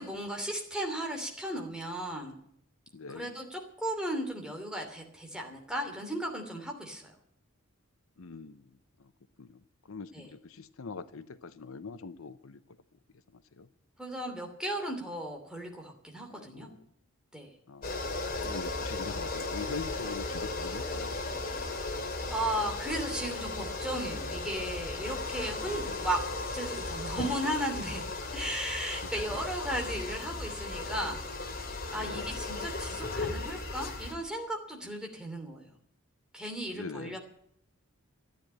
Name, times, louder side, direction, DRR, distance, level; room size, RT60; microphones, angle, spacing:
voice 1, 0.0-2.3 3.1-7.1 10.1-10.2 14.0-16.7 17.3-17.5 22.3-28.0 28.3-31.2 31.9-35.7 36.3-37.2, right 1 dB, 5° right, 2 dB, 2.8 m, -35 dB
voice 2, 2.9-3.3 8.2-9.1 9.4-13.0 13.3-13.7 16.3-16.9 17.7-18.0 18.4-21.2 25.7-26.1 29.0-29.4 31.9-32.3 34.8-35.0 36.7-37.2, left 4 dB, 75° left, 13 dB, 0.7 m, -43 dB
sound 1, 17.8-34.1, left 3 dB, 45° left, 2.5 m, -36 dB
14.0 x 10.0 x 8.9 m, 0.70 s
head